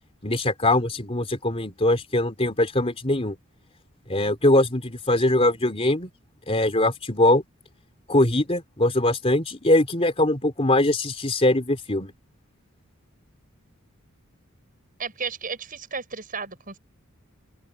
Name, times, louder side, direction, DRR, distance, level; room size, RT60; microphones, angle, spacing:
voice 1, 0.2-3.4 4.1-6.1 6.5-7.4 8.1-12.1, left 1 dB, 30° left, 3.4 m, -22 dB
voice 2, 15.0-16.8, right 5 dB, 40° right, 7.1 m, -33 dB
head